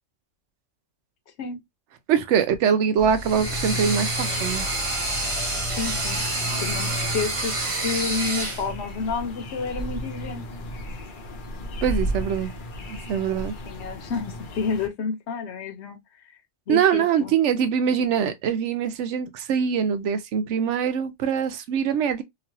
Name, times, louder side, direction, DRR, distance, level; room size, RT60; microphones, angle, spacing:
voice 1, 2.1-4.6 11.8-12.5 12.9-13.5 16.7-22.2, right 7 dB, 80° right, 0.9 m, -23 dB
sound 1, 3.0-8.6, equal, 60° right, 0.3 m, -39 dB
sound 2, 3.1-8.7, right 2 dB, 30° right, 0.8 m, -28 dB
sound 3, 3.2-14.9, equal, 50° left, 0.8 m, -34 dB
voice 2, 5.3-6.3 6.6-10.5 13.2-13.3 13.7-16.0 16.7-17.4, left 5 dB, 75° left, 1.1 m, -30 dB
3.0 x 2.5 x 2.7 m
omnidirectional pair, 1.2 m